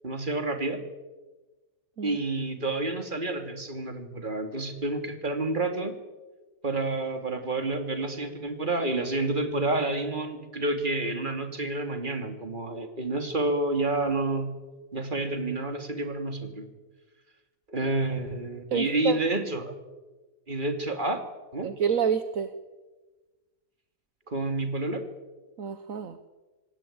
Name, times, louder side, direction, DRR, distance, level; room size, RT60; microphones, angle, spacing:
voice 1, 0.0-0.8 2.0-5.9 6.6-14.5 14.9-16.7 17.7-19.7 20.5-21.2 21.5-21.7 24.3-25.0, right 2 dB, 30° right, 6 dB, 2.9 m, -29 dB
voice 2, 18.7-19.2 21.6-22.5 25.6-26.2, right 7 dB, 65° right, 10 dB, 1.5 m, -28 dB
26.5 x 18.5 x 8.8 m, 1.2 s
omnidirectional pair, 1.6 m